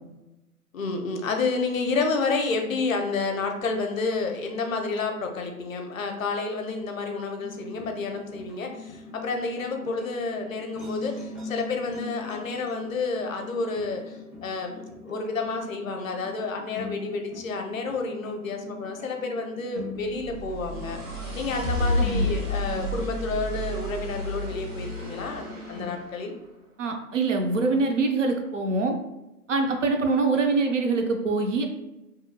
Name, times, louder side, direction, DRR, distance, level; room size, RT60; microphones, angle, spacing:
voice 1, 0.7-21.0 21.3-26.3, left 3 dB, 60° left, 4 dB, 0.5 m, -30 dB
sound 1, 7.4-26.0, left 4 dB, ahead, 0.3 m, -42 dB
sound 2, 20.0-26.1, left 1 dB, 75° right, 0.9 m, -31 dB
voice 2, 22.0-22.3 26.8-29.0 29.5-31.7, right 3 dB, 55° right, 3 dB, 0.5 m, -24 dB
2.7 x 2.2 x 2.6 m, 0.98 s
figure-of-eight pair, 140°, 45 cm